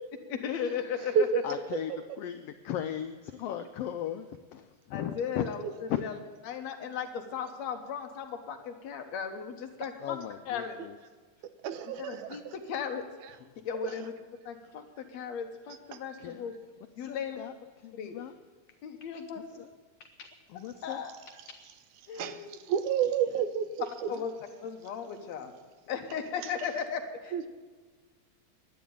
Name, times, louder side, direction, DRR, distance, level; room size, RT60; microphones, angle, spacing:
voice 1, 0.3-1.4 4.9-6.2 6.4-10.2 10.5-10.8 11.8-13.0 13.7-14.1 14.5-16.5 17.0-17.4 17.9-18.2 18.8-19.6 20.8-21.2 22.1-22.8 24.1-24.3 24.6-25.5 25.9-27.5, left 7 dB, 65° left, 5 dB, 2.3 m, -36 dB
voice 2, 1.4-4.3 4.5-5.4 5.9-6.0 10.0-10.9 16.2-16.4 17.1-17.5 17.8-18.3 20.2-21.0, left 10 dB, 90° left, 9 dB, 1.3 m, -37 dB
voice 3, 11.6-12.4 13.8-14.1 22.2-22.4 22.7-24.1 26.4-26.5 27.3-27.5, right 7 dB, 80° right, 10 dB, 2.2 m, -29 dB
11.5 x 10.0 x 8.6 m, 1.4 s
omnidirectional pair, 3.4 m